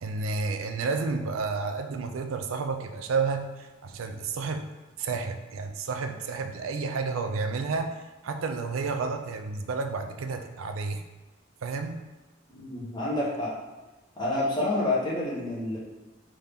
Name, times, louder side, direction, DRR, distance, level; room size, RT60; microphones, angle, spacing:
voice 1, 0.0-8.0 8.2-11.0 11.6-12.1, right 4 dB, 85° right, 6 dB, 0.4 m, -31 dB
voice 2, 12.5-13.5 14.2-15.8, left 2 dB, 20° left, -7 dB, 1.1 m, -28 dB
3.7 x 2.8 x 3.4 m, 1.2 s
head